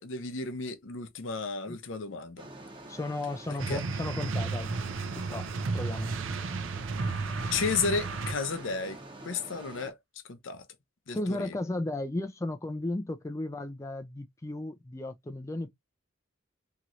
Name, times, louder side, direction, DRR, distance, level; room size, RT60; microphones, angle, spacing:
voice 1, 0.0-2.5 3.7-3.8 7.5-10.0 10.3-10.6 11.1-11.5, left 4 dB, 70° left, 0.6 m, -33 dB
sound 1, 2.4-9.9, right 2 dB, 25° right, 0.8 m, -47 dB
voice 2, 2.9-4.7 5.2-5.5 5.7-6.2 11.1-15.7, left 2 dB, 15° left, 0.4 m, -34 dB
sound 2, 3.6-8.7, right 4 dB, 70° right, 0.5 m, -33 dB
3.0 x 2.8 x 2.4 m
head